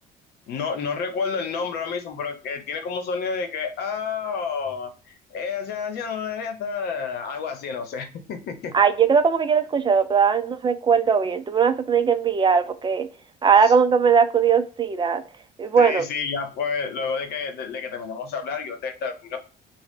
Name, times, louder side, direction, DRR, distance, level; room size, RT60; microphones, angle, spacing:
voice 1, 0.5-8.7 13.6-13.7 15.8-19.4, left 5 dB, 70° left, 0.8 m, -30 dB
voice 2, 8.7-13.1 13.4-15.2 15.6-16.1, right 6 dB, 30° right, 0.4 m, -19 dB
3.7 x 2.1 x 3.5 m
cardioid pair, 110°, 17 cm